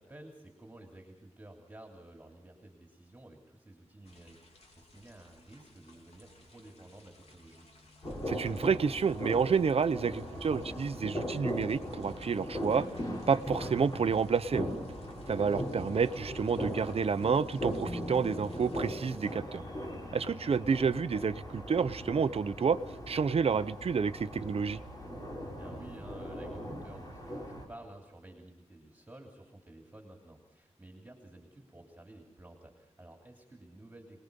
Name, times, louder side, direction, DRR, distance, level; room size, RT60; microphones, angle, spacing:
voice 1, 0.0-7.7 20.2-20.7 25.4-34.2, right 1 dB, 15° right, 2 dB, 3.1 m, -52 dB
sound 1, 4.0-19.3, left 3 dB, 65° left, 3.8 m, -59 dB
sound 2, 8.0-27.7, equal, 35° left, 4.9 m, -39 dB
voice 2, 8.3-12.9 13.3-14.7 15.3-19.6 20.1-22.8 23.1-24.8, right 6 dB, 60° right, 13 dB, 0.8 m, -29 dB
Piano, 17.9-23.1, equal, 10° left, 1.5 m, -48 dB
26.0 x 20.5 x 5.4 m, 1.0 s
wide cardioid pair, 135°, 11 cm